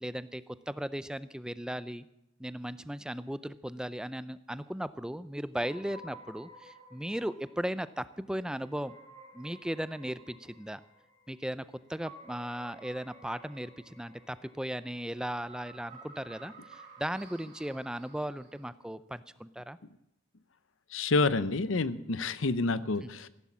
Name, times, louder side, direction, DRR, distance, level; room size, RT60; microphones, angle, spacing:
voice 1, 0.0-2.0 2.4-8.9 9.3-10.8 11.3-11.6 11.9-19.8 23.0-23.1, equal, 5° right, 15 dB, 0.4 m, -37 dB
sound 1, 5.6-18.7, right 2 dB, 35° right, 4.3 m, -54 dB
voice 2, 20.9-23.3, left 3 dB, 80° left, 15 dB, 0.8 m, -28 dB
15.5 x 11.0 x 7.4 m, 0.85 s
head